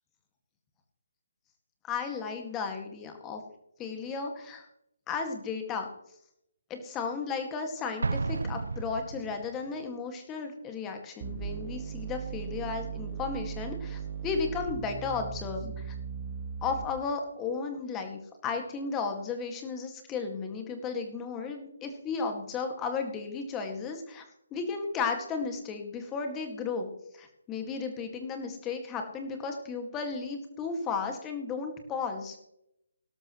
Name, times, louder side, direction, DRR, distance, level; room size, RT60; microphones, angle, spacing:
voice 1, 1.9-3.4 3.8-4.7 5.1-5.9 6.7-15.9 16.6-24.2 24.5-26.9 27.1-32.4, left 5 dB, 15° left, 5 dB, 2.0 m, -34 dB
Explosion, 8.0-9.7, right 3 dB, 75° right, 0.6 m, -32 dB
sound 1, 11.2-17.2, right 7 dB, 35° right, 1.6 m, -38 dB
18.5 x 12.5 x 3.1 m, 0.79 s
figure-of-eight pair, 150°, 0 cm